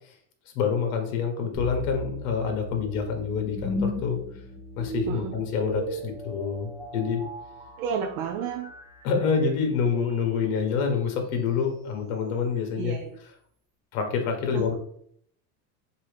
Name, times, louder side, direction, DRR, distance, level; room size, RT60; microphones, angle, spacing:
voice 1, 0.5-4.2 4.8-7.2 9.0-13.0 13.9-14.7, left 6 dB, 60° left, 4 dB, 1.3 m, -27 dB
sound 1, 1.5-10.7, left 1 dB, 10° right, 1.1 m, -37 dB
voice 2, 5.1-5.4 7.8-8.7 12.8-13.1 14.5-14.7, right 7 dB, 45° right, 4 dB, 0.5 m, -31 dB
4.7 x 2.8 x 3.3 m, 0.66 s
supercardioid pair, 155°, 46 cm